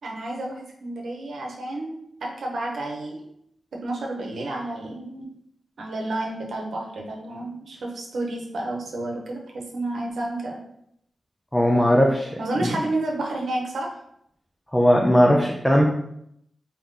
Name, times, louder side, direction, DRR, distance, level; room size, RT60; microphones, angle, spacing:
voice 1, 0.0-3.2 3.8-5.3 5.8-10.6 12.4-13.9, right 2 dB, 75° right, 0 dB, 0.9 m, -30 dB
voice 2, 11.5-12.3 12.6-12.8 14.7-15.8, equal, 5° left, -1 dB, 0.4 m, -18 dB
3.7 x 2.9 x 3.8 m, 0.74 s
wide cardioid pair, 165°, 0 cm